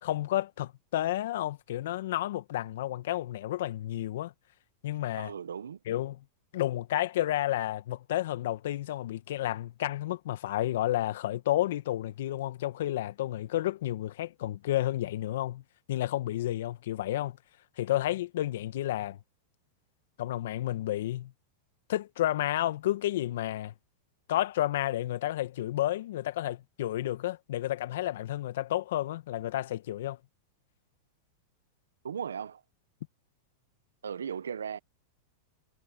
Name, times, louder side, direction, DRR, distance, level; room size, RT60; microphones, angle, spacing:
voice 1, 0.0-4.3 4.8-5.3 5.9-6.2 6.5-15.6 15.9-17.4 17.8-19.2 20.2-21.3 21.9-23.7 24.3-30.2, left 14 dB, 70° left, 1.8 m, -31 dB
voice 2, 5.2-5.8 32.0-32.6 34.0-34.8, right 7 dB, 90° right, 0.8 m, -37 dB
hypercardioid pair, 110°, 0 cm